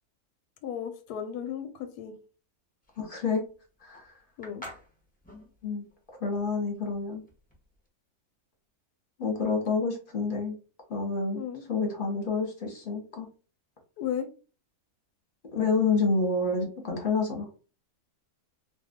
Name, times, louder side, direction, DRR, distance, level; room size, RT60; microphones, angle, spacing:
voice 1, 0.6-2.1 4.4-4.6 11.3-11.6 14.0-14.3, left 8 dB, 90° left, 8 dB, 1.1 m, -34 dB
sound 1, 2.8-7.9, left 1 dB, 10° left, 0.6 m, -49 dB
voice 2, 3.0-3.4 3.8-4.1 5.6-5.9 6.2-7.2 9.2-10.5 10.9-11.4 11.7-13.3 15.5-17.5, left 4 dB, 40° left, 1 dB, 1.0 m, -28 dB
2.6 x 2.5 x 3.5 m, 0.35 s
omnidirectional pair, 1.6 m